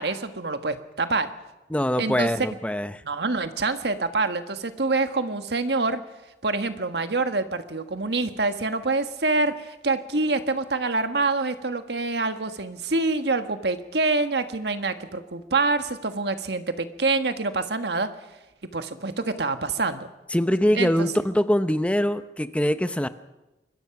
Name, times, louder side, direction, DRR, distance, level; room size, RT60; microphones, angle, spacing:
voice 1, 0.0-1.3 2.0-2.3 3.0-6.0 6.4-18.1 18.7-20.1 20.7-21.1, right 3 dB, 70° right, 8 dB, 1.5 m, -26 dB
voice 2, 1.7-2.9 20.3-23.1, equal, 5° left, 11 dB, 0.8 m, -23 dB
25.0 x 21.5 x 6.0 m, 1.0 s
head